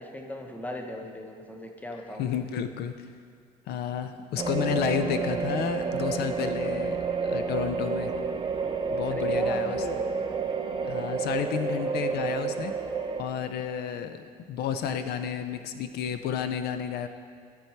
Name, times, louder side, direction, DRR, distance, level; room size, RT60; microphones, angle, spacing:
voice 1, 0.0-2.3 9.1-10.0, left 1 dB, 10° left, 3 dB, 0.8 m, -37 dB
voice 2, 2.2-3.1 3.7-8.1 8.9-9.8 10.8-12.8 13.2-17.1, left 8 dB, 70° left, 9 dB, 0.4 m, -31 dB
sound 1, 4.4-13.2, right 5 dB, 30° right, 0.6 m, -30 dB
12.5 x 4.5 x 4.5 m, 2.2 s
cardioid pair, 110°, 17 cm